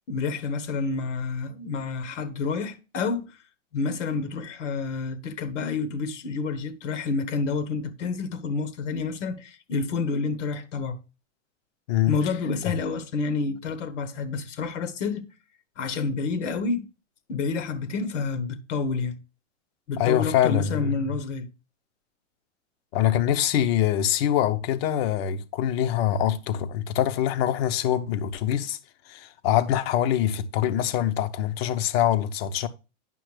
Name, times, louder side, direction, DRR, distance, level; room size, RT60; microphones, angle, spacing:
voice 1, 0.1-3.4 3.7-11.0 12.1-15.3 15.8-16.9 17.3-19.2 19.9-21.5, left 4 dB, 75° left, 1.4 m, -29 dB
voice 2, 20.0-21.0 22.9-28.8 29.1-32.7, left 11 dB, 55° left, 0.9 m, -24 dB
9.3 x 5.7 x 3.3 m
hypercardioid pair, 120°, 37 cm